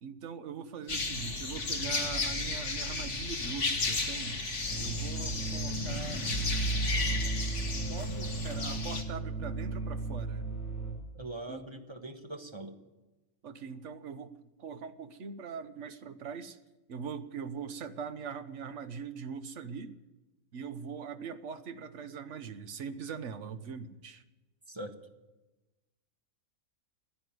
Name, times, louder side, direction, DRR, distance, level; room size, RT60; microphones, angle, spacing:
voice 1, 0.0-4.4 4.8-6.2 7.9-10.5 11.5-11.7 13.4-14.3 14.6-16.6 16.9-20.0 20.5-24.2, right 6 dB, 60° right, 10 dB, 1.3 m, -41 dB
sound 1, 0.9-9.0, left 3 dB, 55° left, 2.1 m, -34 dB
sound 2, 4.6-10.9, right 3 dB, 25° left, 5.3 m, -35 dB
voice 2, 11.1-12.7 24.7-24.9, right 1 dB, 20° right, 5 dB, 1.3 m, -42 dB
16.0 x 9.6 x 9.5 m, 1.1 s
omnidirectional pair, 1.5 m